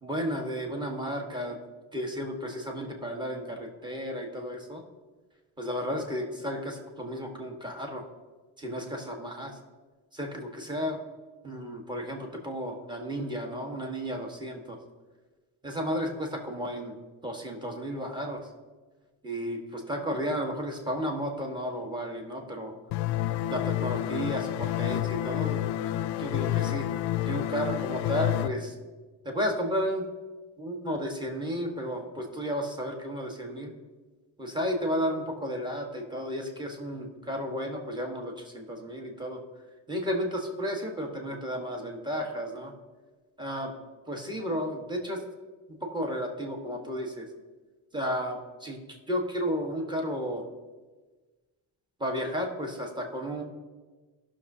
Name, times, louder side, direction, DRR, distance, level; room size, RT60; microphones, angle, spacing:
voice 1, 0.0-1.6 1.9-4.8 5.6-8.1 8.6-9.6 10.1-11.0 11.4-14.8 15.6-17.0 17.2-18.5 19.2-22.7 23.5-25.6 26.2-26.9 27.3-28.7 29.2-30.0 30.6-33.7 34.4-39.4 39.9-42.7 43.4-43.7 44.1-45.2 45.7-47.3 47.9-50.4 52.0-53.4, equal, 10° right, 1 dB, 1.3 m, -33 dB
sound 1, 22.9-28.5, left 13 dB, 65° left, 0.5 m, -29 dB
16.5 x 6.3 x 2.7 m, 1.3 s
cardioid pair, 130°, 45 cm